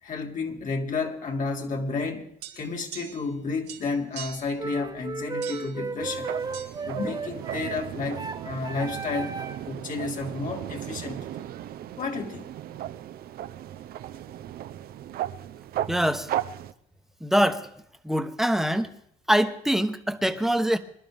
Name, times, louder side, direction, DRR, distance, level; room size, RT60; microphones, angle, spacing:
voice 1, 0.0-2.3 2.6-6.3 6.9-9.3 9.7-11.5 12.0-12.5, left 4 dB, 50° left, 1 dB, 2.6 m, -31 dB
sound 1, 2.4-3.4 3.7-4.6 5.4-5.8 6.5-6.7, right 11 dB, 85° right, 3.4 m, -42 dB
sound 2, 4.6-9.7, right 4 dB, 25° right, 1.1 m, -34 dB
sound 3, 6.0-16.7, right 12 dB, 65° right, 0.7 m, -36 dB
voice 2, 15.9-16.3 17.2-17.7 18.0-18.9 19.3-20.8, equal, ahead, 7 dB, 1.1 m, -24 dB
24.5 x 12.0 x 3.6 m, 0.68 s
cardioid pair, 110°, 17 cm